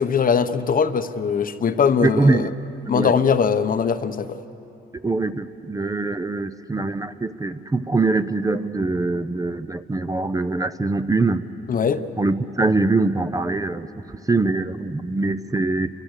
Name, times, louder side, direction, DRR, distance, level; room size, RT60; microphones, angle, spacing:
voice 1, 0.0-2.5 2.9-4.4 11.7-12.0, left 6 dB, 45° left, 10 dB, 0.9 m, -21 dB
voice 2, 2.0-2.5 2.9-3.2 4.9-11.4 12.2-13.9 14.3-15.9, right 3 dB, 15° right, 10 dB, 0.7 m, -23 dB
28.5 x 24.0 x 6.6 m, 2.8 s
cardioid pair, 90°, 20 cm